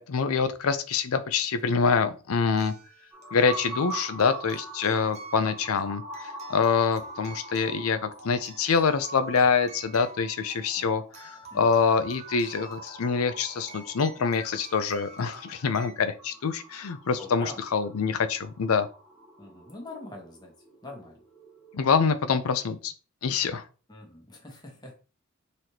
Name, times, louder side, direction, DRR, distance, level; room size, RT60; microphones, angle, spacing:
voice 1, 0.0-2.7 3.3-6.0 6.5-11.0 11.5-18.9 21.7-22.9 23.2-23.6, left 5 dB, 80° left, 11 dB, 0.5 m, -25 dB
sound 1, 1.1-1.2 2.6-16.0, right 3 dB, 30° right, 0.8 m, -46 dB
sound 2, 3.1-22.1, right 2 dB, 5° left, 1.6 m, -45 dB
voice 2, 11.5-11.8 17.2-17.6 19.4-20.5 20.8-21.2 23.9-24.9, left 2 dB, 20° left, 0 dB, 1.1 m, -43 dB
4.0 x 3.2 x 2.8 m, 0.35 s
head